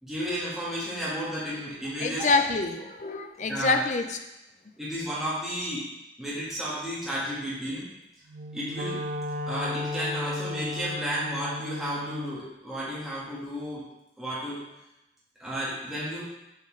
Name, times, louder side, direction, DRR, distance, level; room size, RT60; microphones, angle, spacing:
voice 1, 0.0-2.4 3.5-3.8 4.8-5.8 6.2-7.9 8.5-9.0 9.5-13.8 14.2-14.6 15.4-16.2, equal, ahead, -9 dB, 1.5 m, -32 dB
voice 2, 2.0-4.2, left 3 dB, 40° left, 6 dB, 0.4 m, -26 dB
Wind instrument woodwind instrument, 8.3-12.4, left 2 dB, 45° right, 0.4 m, -34 dB
7.3 x 4.1 x 3.2 m, 0.94 s
head